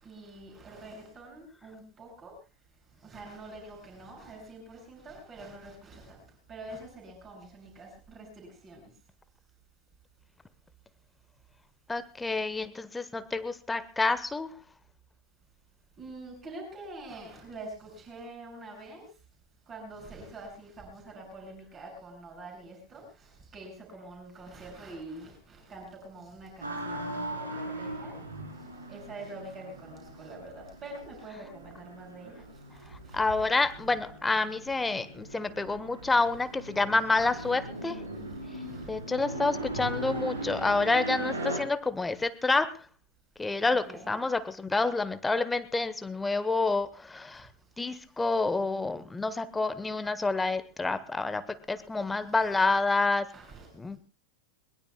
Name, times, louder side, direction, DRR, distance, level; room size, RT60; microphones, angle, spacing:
voice 1, 0.0-2.3 3.0-6.2 6.5-8.8 16.0-19.0 19.7-28.2 28.9-32.3 33.1-33.5 37.1-37.5 38.6-38.9 43.8-44.2 53.3-53.7, right 2 dB, 25° right, 2 dB, 7.0 m, -45 dB
voice 2, 11.9-14.5 33.1-38.0 38.9-42.9 43.4-47.5 47.8-53.3 53.7-54.0, left 3 dB, 10° left, 14 dB, 1.1 m, -28 dB
sound 1, 26.6-41.6, right 1 dB, 75° right, 4.2 m, -39 dB
21.5 x 21.0 x 2.3 m, 0.30 s
figure-of-eight pair, 90°, 0 cm